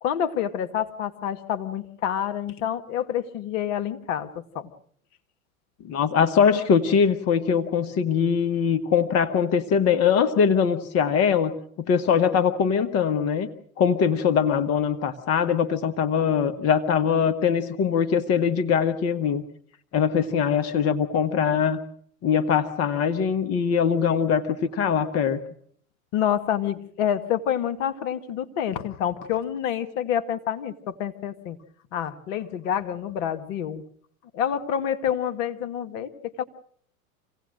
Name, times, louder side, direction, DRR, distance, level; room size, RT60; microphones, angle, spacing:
voice 1, 0.0-4.7 26.1-31.6 31.9-33.8 34.3-36.4, left 9 dB, 55° left, 9 dB, 1.7 m, -28 dB
voice 2, 5.8-11.5 11.8-13.5 13.8-19.4 19.9-21.8 22.2-25.4, left 7 dB, 35° left, 11 dB, 1.4 m, -22 dB
27.0 x 17.0 x 6.5 m, 0.62 s
hypercardioid pair, 95°, 43 cm